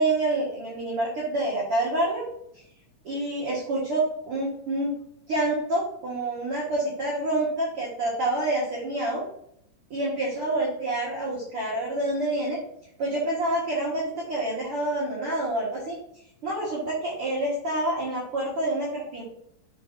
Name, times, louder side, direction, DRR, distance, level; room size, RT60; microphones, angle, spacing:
voice 1, 0.0-2.3 3.0-5.0 5.3-9.2 9.9-12.6 13.0-16.0 16.4-19.2, right 1 dB, 50° right, -5 dB, 1.9 m, -27 dB
7.5 x 5.6 x 2.7 m, 0.71 s
omnidirectional pair, 4.4 m